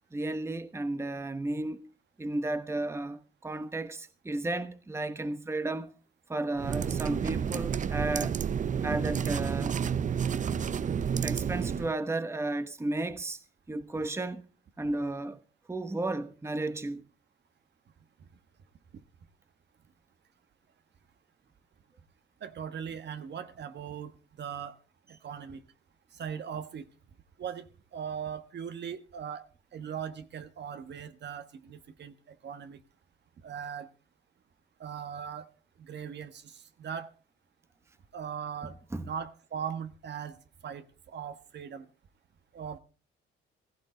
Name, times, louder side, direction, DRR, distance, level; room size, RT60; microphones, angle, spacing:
voice 1, 0.1-1.9 2.2-5.9 6.3-8.3 8.8-9.8 11.2-13.4 13.7-14.4 14.8-15.4 15.7-17.0 38.9-39.1, right 2 dB, 10° right, 1.0 m, -33 dB
sound 1, 6.6-11.9, right 7 dB, 35° right, 0.6 m, -30 dB
voice 2, 22.4-24.8 25.1-25.6 26.1-26.9 27.4-29.4 29.7-32.8 33.4-33.9 34.8-35.5 35.8-37.1 38.1-41.9 42.5-42.8, right 8 dB, 55° right, 1.4 m, -40 dB
16.0 x 15.0 x 3.9 m
cardioid pair, 105°, 21 cm